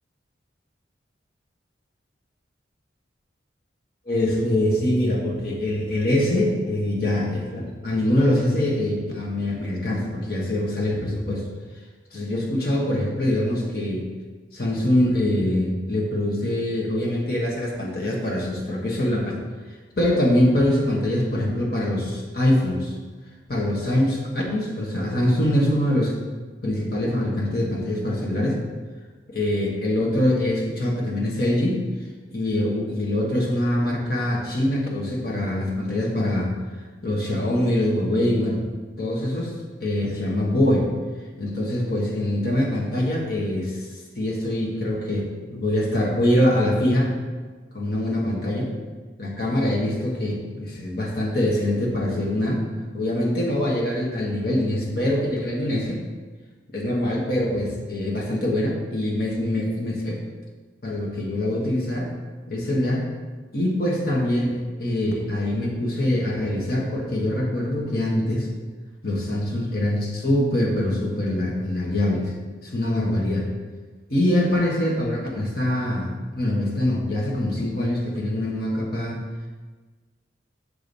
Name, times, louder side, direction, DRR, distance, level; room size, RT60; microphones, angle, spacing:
voice 1, 4.1-11.5 12.1-14.0 14.5-19.3 20.0-23.0 23.5-26.2 26.6-28.6 29.3-31.8 32.3-36.5 37.0-38.6 39.0-39.5 39.8-40.9 41.4-43.9 44.2-45.2 45.5-47.1 47.7-48.7 49.2-52.6 52.9-56.0 56.7-60.2 60.8-62.1 62.5-63.1 63.5-68.5 69.0-72.3 72.6-73.5 74.1-79.2, left 1 dB, 55° left, -3 dB, 1.4 m, -24 dB
6.8 x 5.1 x 4.1 m, 1.3 s
head